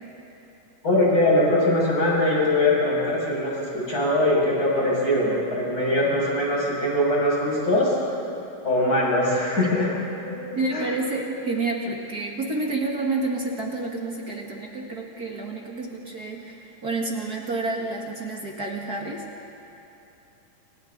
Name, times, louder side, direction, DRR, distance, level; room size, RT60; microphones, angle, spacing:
voice 1, 0.8-7.9 8.6-9.9 10.3-10.8, left 1 dB, 25° left, -5 dB, 7.0 m, -22 dB
voice 2, 10.5-19.2, right 3 dB, 40° right, -1 dB, 1.5 m, -29 dB
29.0 x 27.0 x 4.0 m, 2.8 s
omnidirectional pair, 4.2 m